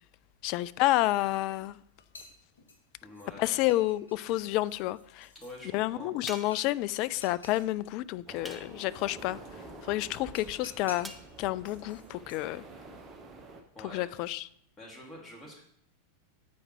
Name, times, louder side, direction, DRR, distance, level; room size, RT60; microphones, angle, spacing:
voice 1, 0.4-1.8 3.4-5.3 5.7-9.4 9.9-11.1 11.4-12.6 13.9-14.5, left 16 dB, 40° left, 0.3 m, -29 dB
sound 1, 1.5-1.6 2.0-3.3 3.7-5.6 6.3-6.8 7.0-7.7 9.2-9.3 10.1-11.2 11.6-12.5, left 2 dB, 75° left, 1.4 m, -52 dB
voice 2, 3.0-3.6 5.3-6.1 13.7-14.1 14.8-15.6, left 1 dB, 15° left, 2.9 m, -46 dB
sound 2, 6.3-6.8 8.4-9.0 11.0-11.3, right 1 dB, ahead, 0.8 m, -44 dB
sound 3, 8.3-13.6, right 3 dB, 20° right, 1.2 m, -48 dB
8.4 x 5.0 x 4.8 m
figure-of-eight pair, 90°, 0 cm